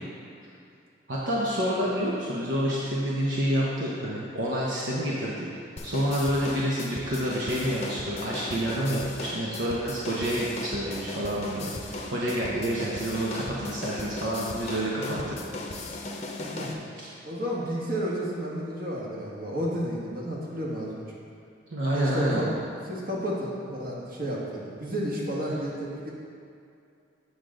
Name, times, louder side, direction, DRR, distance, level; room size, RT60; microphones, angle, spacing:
voice 1, 1.1-5.5 5.8-15.4 17.0-17.1 21.7-22.5, equal, 70° right, -6 dB, 0.9 m, -28 dB
sound 1, 5.8-16.7, left 2 dB, 35° left, 0.7 m, -37 dB
voice 2, 16.4-16.9 17.2-21.2 21.9-22.6 22.9-26.1, equal, 50° right, -4 dB, 1.5 m, -32 dB
8.2 x 6.4 x 3.8 m, 2.4 s
head